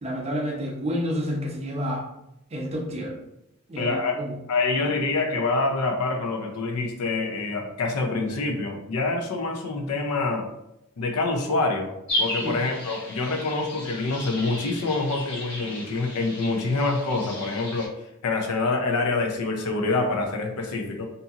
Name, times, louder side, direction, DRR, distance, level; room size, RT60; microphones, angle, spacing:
voice 1, 0.0-2.0 2.5-3.2 3.7-4.4 12.4-12.6, equal, 30° right, -1 dB, 0.5 m, -29 dB
voice 2, 3.8-4.2 4.5-10.5 11.0-11.9 12.2-17.9 18.2-21.1, left 3 dB, 90° left, 3 dB, 0.6 m, -26 dB
sound 1, 12.1-17.9, left 1 dB, 55° left, 0.9 m, -34 dB
2.7 x 2.6 x 2.4 m, 0.85 s
head